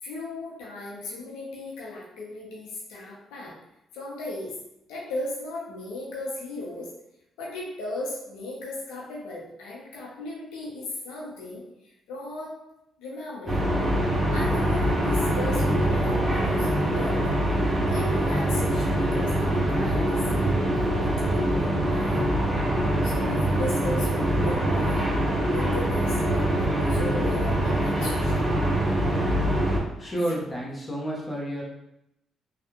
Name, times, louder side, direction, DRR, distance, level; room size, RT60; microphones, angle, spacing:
voice 1, 0.0-3.5 3.9-4.6 4.9-6.9 7.4-12.6 13.0-17.6 17.9-20.2 20.7-22.4 23.0-25.1 25.5-28.5 30.0-30.4, left 1 dB, 90° left, -4 dB, 0.8 m, -37 dB
sound 1, 13.5-29.8, right 1 dB, 30° right, 1.0 m, -24 dB
voice 2, 30.0-31.6, right 1 dB, 15° left, -4 dB, 1.1 m, -30 dB
3.3 x 2.4 x 2.9 m, 0.84 s
supercardioid pair, 65°, 0 cm